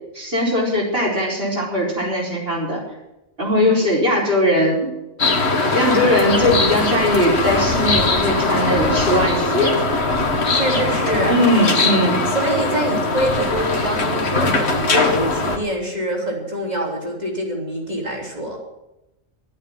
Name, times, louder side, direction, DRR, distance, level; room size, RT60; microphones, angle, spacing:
voice 1, 0.2-2.8 3.4-4.9 5.7-9.8 11.3-12.2, left 1 dB, 50° right, -3 dB, 5.1 m, -19 dB
sound 1, 5.2-15.6, left 3 dB, 60° left, 1.9 m, -20 dB
voice 2, 10.5-11.4 12.3-18.6, right 1 dB, 35° right, 0 dB, 3.6 m, -25 dB
12.5 x 8.8 x 9.4 m, 0.92 s
omnidirectional pair, 1.3 m